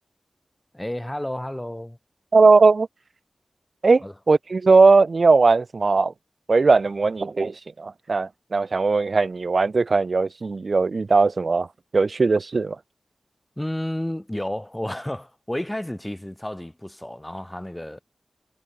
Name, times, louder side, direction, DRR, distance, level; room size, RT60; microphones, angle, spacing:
voice 1, 0.7-2.0 4.0-4.1 13.6-18.0, left 1 dB, 15° left, 0.7 m, -31 dB
voice 2, 2.3-2.9 3.8-6.1 6.5-11.7 11.9-12.8, right 4 dB, 60° right, 0.3 m, -18 dB
wide cardioid pair, 60°, 0 cm